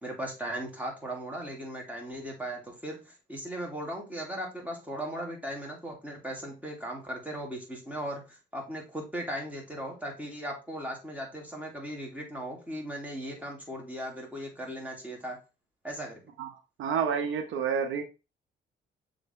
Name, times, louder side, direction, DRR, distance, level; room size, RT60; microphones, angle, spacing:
voice 1, 0.0-15.4 15.8-16.2, right 1 dB, 10° right, -1 dB, 2.9 m, -37 dB
voice 2, 16.8-18.0, right 7 dB, 80° right, 6 dB, 1.0 m, -29 dB
6.8 x 3.9 x 3.8 m, 0.29 s
cardioid pair, 90°, 20 cm